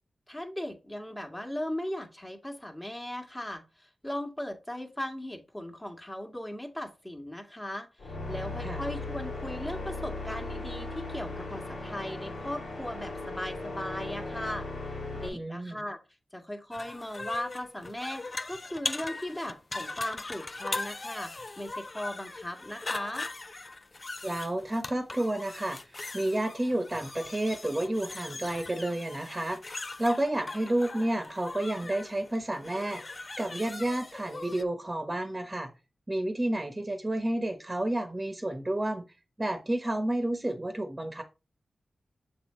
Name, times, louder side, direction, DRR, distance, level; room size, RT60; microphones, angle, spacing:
voice 1, 0.3-14.7 15.1-16.0 16.3-23.3, left 1 dB, 15° left, 4 dB, 1.8 m, -38 dB
sound 1, 8.0-15.3, left 2 dB, 80° left, 2.3 m, -37 dB
voice 2, 15.3-15.8 24.2-33.0 33.4-35.7 36.1-39.0 39.4-41.2, right 1 dB, 25° right, 6 dB, 1.2 m, -31 dB
sound 2, 16.7-34.6, left 2 dB, 45° left, 0.5 m, -40 dB
6.6 x 3.6 x 4.3 m, 0.29 s
cardioid pair, 45°, 0 cm